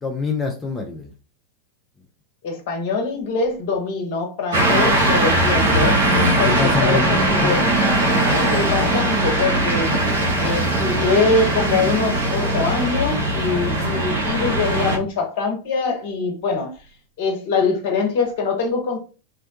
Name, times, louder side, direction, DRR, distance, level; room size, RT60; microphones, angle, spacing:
voice 1, 0.0-1.1 4.7-5.0 6.3-7.5, left 4 dB, 15° left, 0.5 m, -26 dB
voice 2, 2.4-7.6 8.2-9.9 10.4-16.8 17.2-19.0, left 4 dB, 50° left, 0.8 m, -23 dB
sound 1, 4.5-15.0, right 1 dB, 65° right, 0.7 m, -20 dB
2.6 x 2.2 x 2.6 m
figure-of-eight pair, 90°, 0 cm